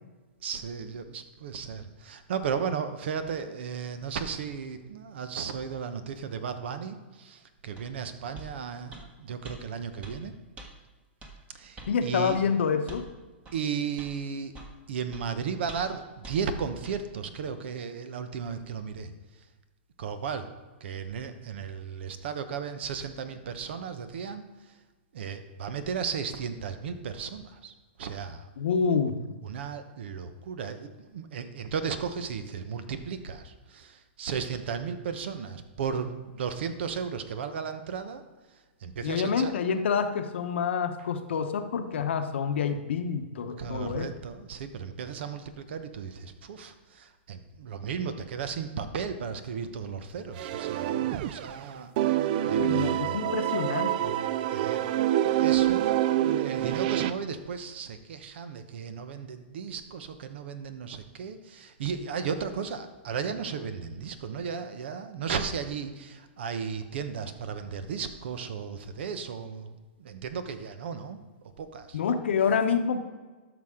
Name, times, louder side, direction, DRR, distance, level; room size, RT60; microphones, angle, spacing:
voice 1, 0.4-10.3 11.5-12.4 13.5-14.5 14.9-19.1 20.0-20.5 20.8-24.7 25.1-27.7 28.0-28.5 29.4-38.2 38.8-39.5 41.0-41.1 43.6-52.2 52.4-53.2 54.5-54.9 55.2-71.2 71.6-72.0, right 6 dB, 70° right, 10 dB, 1.0 m, -35 dB
sound 1, 7.8-7.9 8.3-8.5 8.9-9.1 9.4-9.6 10.0-10.2 10.6-10.7 11.2-11.3 11.8-11.9 12.3-12.4 12.9-13.1 13.4-13.6 14.0-14.1 14.5-14.7 15.1-15.2 15.7-15.9 16.2-16.4 16.8-17.0, right 2 dB, 20° right, 1.4 m, -44 dB
voice 2, 11.9-13.0 28.6-29.2 39.0-44.1 52.6-54.1 71.9-73.0, left 6 dB, 75° left, 8 dB, 0.9 m, -27 dB
sound 2, 50.4-51.6 52.0-57.1, right 12 dB, 50° right, 0.4 m, -26 dB
12.5 x 6.1 x 3.7 m, 1.3 s
hypercardioid pair, 135°, 6 cm